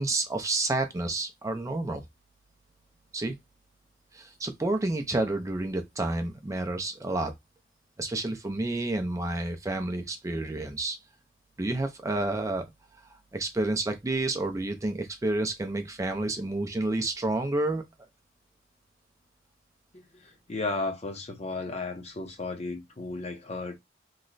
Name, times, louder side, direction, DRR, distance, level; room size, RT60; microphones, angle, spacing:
voice 1, 0.0-2.0 3.1-3.4 4.1-7.3 8.0-11.0 11.6-12.6 13.3-17.8, right 2 dB, 20° right, 0.4 m, -29 dB
voice 2, 19.9-23.8, left 3 dB, 40° left, 0.7 m, -34 dB
3.0 x 2.1 x 3.8 m
head